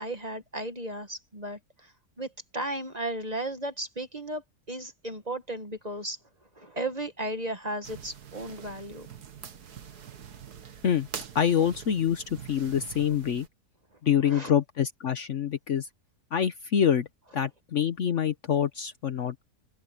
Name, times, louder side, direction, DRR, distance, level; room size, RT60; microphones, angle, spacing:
voice 1, 0.0-1.9 2.2-6.2 6.6-9.1 14.2-14.5, right 1 dB, 25° right, 1.4 m, -35 dB
sound 1, 7.8-13.5, right 8 dB, 80° right, 1.9 m, -44 dB
voice 2, 11.3-13.5 14.0-15.9 16.3-17.1 17.3-19.4, left 8 dB, 55° left, 1.1 m, -26 dB
open air
omnidirectional pair, 1.7 m